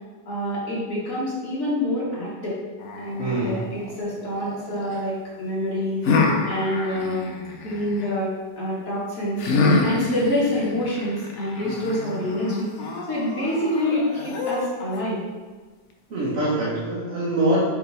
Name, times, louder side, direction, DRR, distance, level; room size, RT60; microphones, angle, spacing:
voice 1, 0.3-2.6 3.0-7.3 7.6-15.2, left 1 dB, 55° left, -7 dB, 1.8 m, -27 dB
sound 1, 2.8-5.0 6.0-8.1 9.4-15.0, left 3 dB, 70° left, 0.7 m, -27 dB
voice 2, 3.2-3.7 16.1-17.6, right 1 dB, 60° right, -5 dB, 0.9 m, -24 dB
4.7 x 2.9 x 3.9 m, 1.4 s
omnidirectional pair, 1.8 m